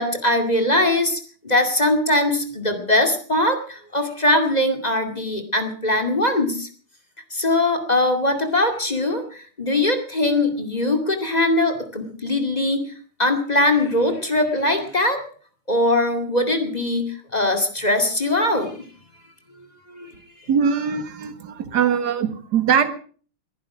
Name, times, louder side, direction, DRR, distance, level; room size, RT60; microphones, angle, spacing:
voice 1, 0.0-6.7 7.3-12.9 13.2-15.3 15.7-18.8 19.9-20.1, left 1 dB, 20° left, 6 dB, 2.3 m, -21 dB
voice 2, 20.5-22.9, right 7 dB, 50° right, 10 dB, 2.0 m, -21 dB
21.0 x 11.0 x 6.1 m, 0.44 s
omnidirectional pair, 2.4 m